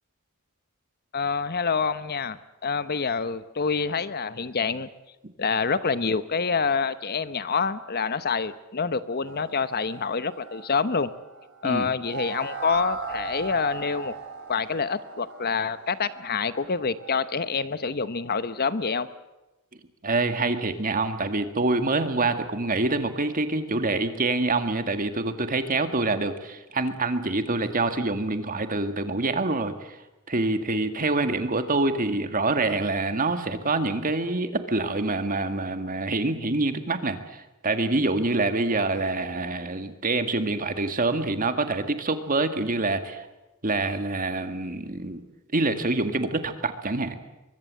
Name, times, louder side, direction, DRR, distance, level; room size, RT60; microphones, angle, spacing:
voice 1, 1.1-4.9 5.4-11.1 11.6-14.1 14.5-19.1, left 5 dB, 45° left, 14 dB, 0.9 m, -27 dB
sound 1, 9.3-17.3, right 6 dB, 55° right, 3.4 m, -39 dB
voice 2, 20.0-30.0 30.3-43.3 43.6-45.2 45.5-47.1, right 2 dB, 40° right, 8 dB, 2.0 m, -26 dB
23.5 x 23.0 x 7.6 m, 1.0 s
head